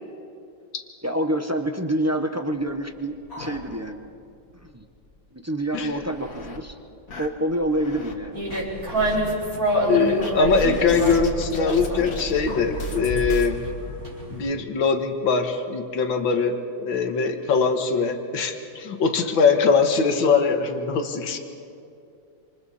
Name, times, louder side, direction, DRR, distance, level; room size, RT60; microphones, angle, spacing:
voice 1, 1.0-4.1 4.7-4.8 5.3-6.8 7.1-8.4 19.2-19.3, right 1 dB, 15° right, 4 dB, 0.6 m, -27 dB
sound 1, 2.6-4.2 4.5-4.6 5.0-5.1 5.7-6.6 7.1-8.1 8.5-9.2 10.2-13.5, left 1 dB, 50° left, 2.2 m, -34 dB
sound 2, 8.3-14.5, right 1 dB, 50° right, 5.6 m, -27 dB
voice 2, 9.9-13.6 14.3-21.4, left 5 dB, 90° left, 6 dB, 2.1 m, -22 dB
27.5 x 26.5 x 4.3 m, 2.6 s
omnidirectional pair, 2.1 m